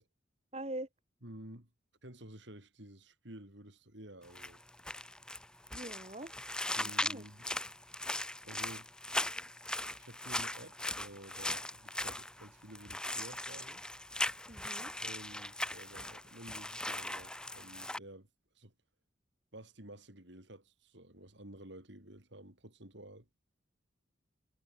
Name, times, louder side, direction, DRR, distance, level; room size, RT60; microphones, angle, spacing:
voice 1, 0.5-0.9 5.7-6.3 6.8-7.2 14.5-14.9, right 1 dB, 30° right, 1.8 m, -43 dB
voice 2, 1.2-1.7 2.0-4.6 6.7-7.5 8.4-8.9 9.9-13.8 15.0-18.3 18.5-18.7 19.5-23.3, right 1 dB, 65° right, 4.9 m, -52 dB
sound 1, 4.2-18.0, left 1 dB, 5° left, 2.0 m, -39 dB
head